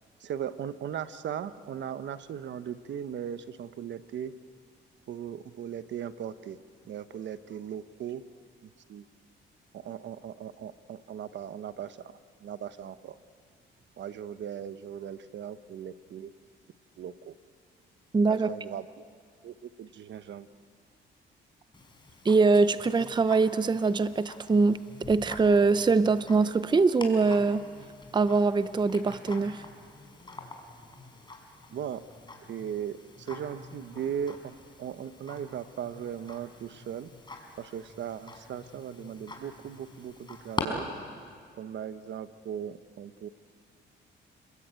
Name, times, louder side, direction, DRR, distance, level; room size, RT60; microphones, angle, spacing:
voice 1, 0.2-4.3 5.1-6.6 6.8-8.2 8.9-9.0 9.7-13.2 14.0-16.3 17.0-17.3 18.3-18.9 19.4-20.5 31.7-32.0 32.5-37.1 37.6-40.9 41.6-43.3, right 9 dB, 65° right, 12 dB, 1.2 m, -38 dB
voice 2, 18.1-18.5 22.2-24.8 25.1-27.7 28.1-29.6, right 4 dB, 20° right, 13 dB, 0.7 m, -23 dB
Tick-tock, 21.7-40.6, left 3 dB, 25° left, 5.1 m, -45 dB
30.0 x 21.5 x 9.1 m, 2.1 s
cardioid pair, 90°, 20 cm